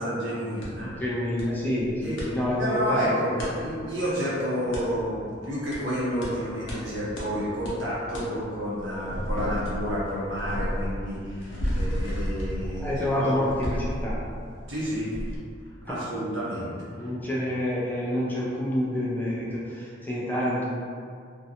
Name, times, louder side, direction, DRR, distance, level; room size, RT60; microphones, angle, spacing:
voice 1, 0.0-1.0 2.0-2.2 2.6-13.4 14.7-15.1 15.8-16.7, equal, 70° right, -8 dB, 0.8 m, -30 dB
sound 1, 0.6-0.7 1.4-1.5 1.8-2.3 3.4-3.5 4.7-4.9 5.7-5.8 6.2-6.3 6.7-6.8 7.2-7.3 7.6-7.8 8.1-8.3 8.7-14.7 15.1-15.4, equal, 80° left, 0.6 m, -32 dB
voice 2, 1.0-3.5 12.6-14.2 15.9-16.1 16.9-20.6, left 1 dB, 10° left, -6 dB, 0.3 m, -28 dB
2.5 x 2.1 x 2.7 m, 2.2 s
head